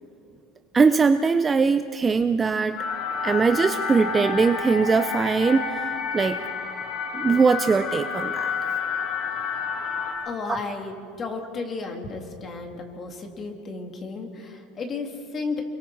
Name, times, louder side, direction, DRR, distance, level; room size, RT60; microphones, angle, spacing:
voice 1, 0.7-2.8 3.2-5.8 6.1-6.4 7.1-8.5 10.5-10.6, right 4 dB, 15° right, 9 dB, 0.4 m, -21 dB
sound 1, 2.8-10.1, left 5 dB, 50° left, 7.0 m, -29 dB
voice 2, 10.2-15.7, left 4 dB, 25° left, 4 dB, 2.2 m, -33 dB
29.5 x 22.5 x 4.6 m, 2.4 s
cardioid pair, 170°, 0 cm